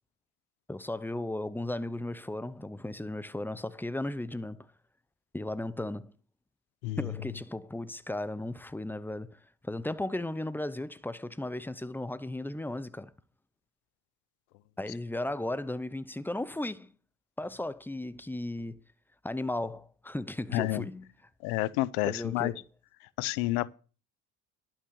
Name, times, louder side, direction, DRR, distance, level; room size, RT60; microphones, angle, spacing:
voice 1, 0.7-4.7 5.3-6.1 7.0-13.1 14.8-16.9 17.4-18.8 19.2-21.1 22.0-22.6, left 1 dB, 5° left, 0.6 m, -35 dB
voice 2, 20.5-20.8 21.4-22.5 23.2-23.7, left 17 dB, 90° left, 0.7 m, -29 dB
11.5 x 5.9 x 7.0 m
supercardioid pair, 80°, 44 cm